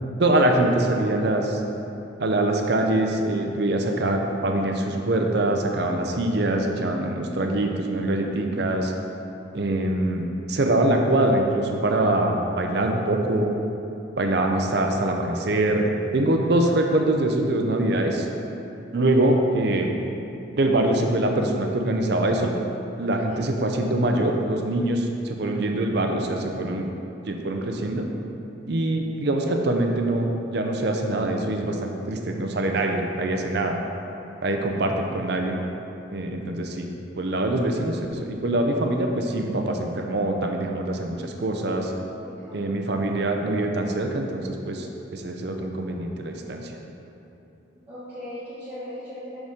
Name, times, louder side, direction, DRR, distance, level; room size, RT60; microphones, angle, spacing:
voice 1, 0.2-1.6 2.2-8.9 9.5-10.2 10.5-13.5 14.2-15.9 16.1-18.3 18.9-19.9 20.6-22.5 23.0-26.9 27.2-28.0 28.7-33.8 34.4-35.6 36.1-36.9 37.2-41.9 42.5-44.9 45.1-46.7, right 1 dB, 55° right, 3 dB, 0.6 m, -24 dB
voice 2, 0.9-1.2 23.3-23.5 42.2-42.7 47.2-47.3 47.7-49.4, left 1 dB, 10° right, -15 dB, 1.5 m, -39 dB
6.4 x 5.9 x 3.6 m, 2.8 s
head